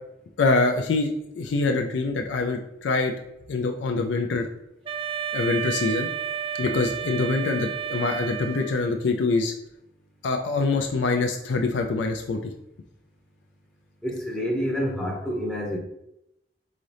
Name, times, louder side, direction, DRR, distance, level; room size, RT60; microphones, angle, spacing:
voice 1, 0.4-3.1 3.5-4.5 5.3-6.1 6.6-9.5 10.2-12.5, left 3 dB, 80° left, 0.4 m, -25 dB
Wind instrument woodwind instrument, 4.8-9.0, right 8 dB, 30° right, 0.3 m, -31 dB
voice 2, 14.0-15.8, equal, 5° left, 0.7 m, -28 dB
4.0 x 3.7 x 3.2 m
head